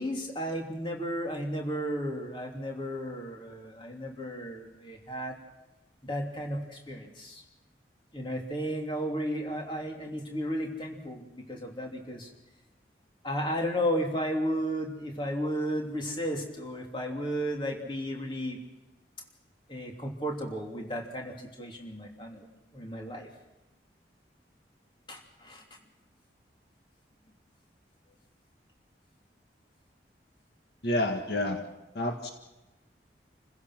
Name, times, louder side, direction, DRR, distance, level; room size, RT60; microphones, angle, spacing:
voice 1, 0.0-5.4 6.0-7.4 8.1-12.3 13.2-18.6 19.7-22.5 22.7-23.3 25.1-25.6, equal, 25° left, 1 dB, 3.1 m, -34 dB
voice 2, 30.8-31.6 32.0-32.3, left 1 dB, 65° left, 4 dB, 1.8 m, -28 dB
28.5 x 16.0 x 6.2 m, 1.0 s
head